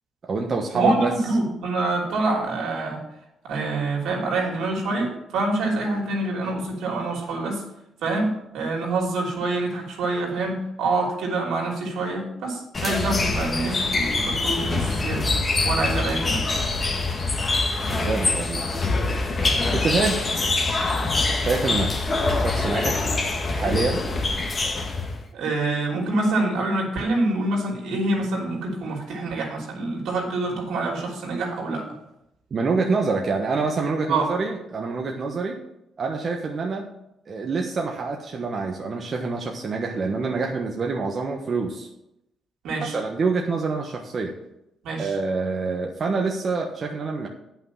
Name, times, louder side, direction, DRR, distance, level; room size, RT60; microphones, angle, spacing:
voice 1, 0.2-1.1 17.9-18.7 19.7-20.3 21.4-21.9 22.4-23.1 23.5-24.0 32.5-35.6 36.0-36.9 37.3-41.9 42.8-44.3 45.0-47.3, right 4 dB, 45° right, 1 dB, 1.2 m, -26 dB
voice 2, 0.7-3.0 3.4-7.6 8.0-15.2 15.6-16.4 25.3-31.9 34.1-34.3 42.6-43.0 44.8-45.1, right 2 dB, 80° right, -1 dB, 3.1 m, -26 dB
sound 1, 12.7-25.2, left 3 dB, 35° left, 1.5 m, -24 dB
8.9 x 5.8 x 7.2 m, 0.84 s
cardioid pair, 90°, 0 cm